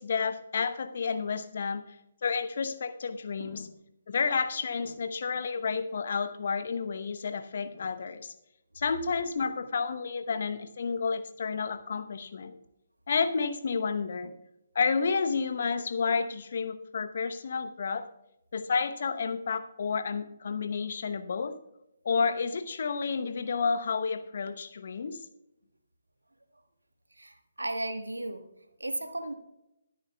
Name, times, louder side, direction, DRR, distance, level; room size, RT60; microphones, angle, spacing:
voice 1, 0.0-1.8 2.2-3.7 4.1-8.3 8.8-12.6 13.1-14.4 14.7-18.1 18.5-21.5 22.0-25.2, left 5 dB, 55° left, 9 dB, 0.9 m, -30 dB
voice 2, 27.1-28.5 28.8-29.3, right 1 dB, 80° right, 8 dB, 1.3 m, -35 dB
21.5 x 9.1 x 2.3 m, 0.85 s
figure-of-eight pair, 140°, 0 cm